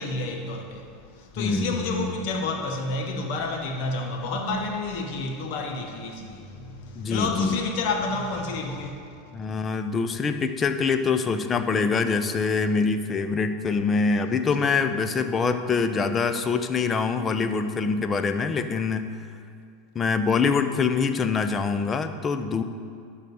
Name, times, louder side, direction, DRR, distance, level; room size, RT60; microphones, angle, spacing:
voice 1, 0.0-9.0, left 3 dB, 60° left, 3 dB, 1.4 m, -29 dB
voice 2, 1.4-2.2 7.0-7.6 9.3-19.1 19.9-22.6, left 5 dB, 25° left, 9 dB, 0.7 m, -25 dB
12.0 x 4.0 x 7.9 m, 2.3 s
hypercardioid pair, 85°, 0 cm